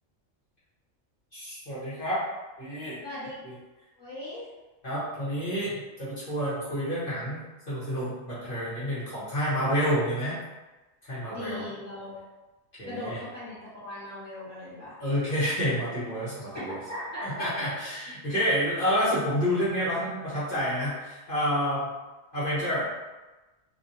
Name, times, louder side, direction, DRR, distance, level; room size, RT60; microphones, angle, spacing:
voice 1, 1.3-2.2 2.6-3.0 3.4-3.5 4.8-10.4 11.0-11.6 12.8-13.2 15.0-16.8 17.2-21.9 22.3-22.9, equal, 45° left, -11 dB, 1.5 m, -29 dB
voice 2, 3.0-3.4 4.0-4.5 11.3-12.2 12.8-15.0 16.5-17.7, left 1 dB, 15° right, -12 dB, 1.3 m, -38 dB
3.4 x 2.6 x 2.8 m, 1.1 s
omnidirectional pair, 1.4 m